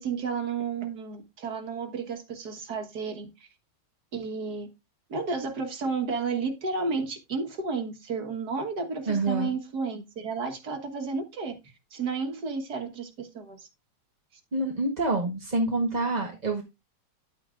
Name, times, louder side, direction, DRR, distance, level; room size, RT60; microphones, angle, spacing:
voice 1, 0.0-3.3 4.1-4.7 5.1-11.5 11.9-13.7, right 4 dB, 70° right, 4 dB, 2.0 m, -32 dB
voice 2, 9.0-9.5 14.5-16.6, right 2 dB, 30° right, 2 dB, 1.2 m, -27 dB
11.0 x 8.9 x 2.5 m, 0.24 s
omnidirectional pair, 1.8 m